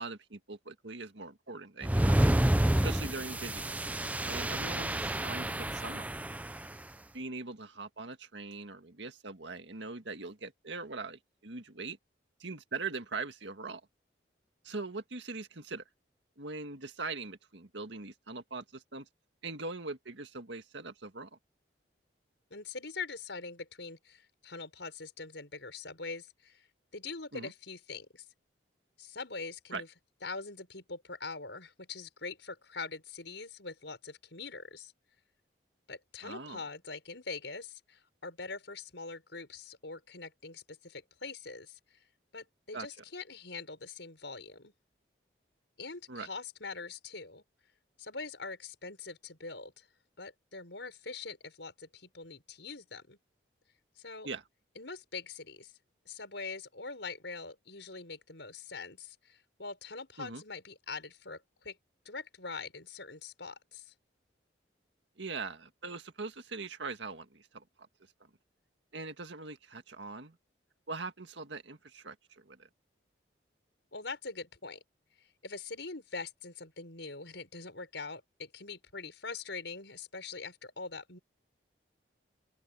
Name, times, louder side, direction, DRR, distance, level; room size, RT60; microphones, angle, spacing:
voice 1, 0.0-2.2 2.7-3.6 4.2-6.1 7.1-12.0 12.4-13.8 14.6-15.8 16.4-19.1 19.4-21.3 27.3-27.5 29.7-29.8 36.2-36.6 42.7-42.9 46.1-46.3 54.3-54.4 60.2-60.4 65.2-67.6 68.9-70.4 70.9-72.7, right 3 dB, 75° right, 1.8 m, -41 dB
sound 1, 1.8-6.7, right 1 dB, 10° right, 0.5 m, -29 dB
voice 2, 22.5-26.7 26.9-28.2 29.0-29.9 30.2-34.9 35.9-41.8 42.3-44.7 45.8-47.4 48.0-49.9 50.2-53.2 54.0-54.3 54.7-55.7 56.0-61.8 62.0-63.9 73.9-74.8 75.4-81.2, left 4 dB, 75° left, 5.1 m, -43 dB
open air
head